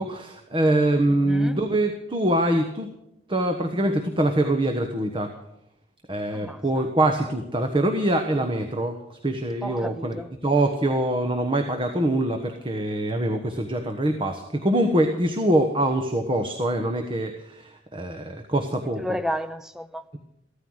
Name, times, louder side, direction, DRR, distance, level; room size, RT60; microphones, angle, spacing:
voice 1, 0.0-2.9 3.3-5.3 6.1-10.2 10.4-19.0, right 1 dB, 30° right, 1.2 m, -24 dB
voice 2, 1.1-1.6 6.3-6.9 9.6-10.3 19.0-20.0, equal, 5° right, 0.6 m, -32 dB
15.5 x 13.5 x 6.4 m
head